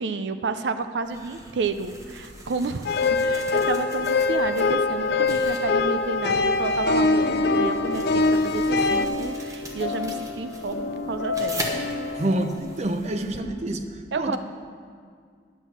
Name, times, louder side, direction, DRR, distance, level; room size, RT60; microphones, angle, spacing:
voice 1, 0.0-11.7 14.1-14.4, right 4 dB, 80° right, 10 dB, 0.5 m, -30 dB
sound 1, 1.0-13.4, right 1 dB, 20° right, 1.0 m, -41 dB
sound 2, 2.9-9.1, left 3 dB, 60° left, 0.4 m, -23 dB
sound 3, 7.1-12.6, left 4 dB, 90° left, 1.2 m, -32 dB
voice 2, 12.1-13.8 14.2-14.4, right 1 dB, 40° right, 7 dB, 0.6 m, -27 dB
10.0 x 6.3 x 7.1 m, 2.1 s
head